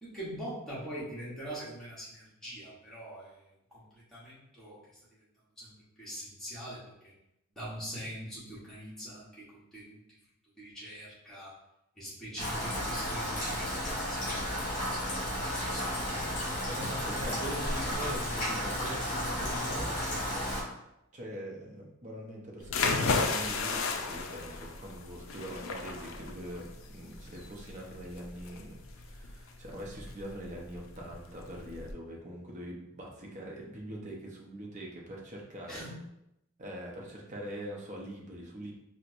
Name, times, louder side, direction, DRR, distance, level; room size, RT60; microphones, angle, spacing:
voice 1, 0.0-3.3 3.7-4.8 5.6-5.7 6.0-7.1 7.6-10.0 10.6-11.5 12.0-14.4 14.9-16.0 16.4-17.4 35.7-36.0, equal, ahead, -9 dB, 1.1 m, -43 dB
Rain, 12.4-20.6, equal, 35° left, 1.2 m, -33 dB
voice 2, 16.7-19.9 21.1-35.8 36.6-38.7, equal, 35° right, -2 dB, 0.6 m, -43 dB
sound 1, 22.6-31.9, left 4 dB, 65° left, 0.4 m, -34 dB
4.3 x 2.1 x 2.5 m, 0.84 s
head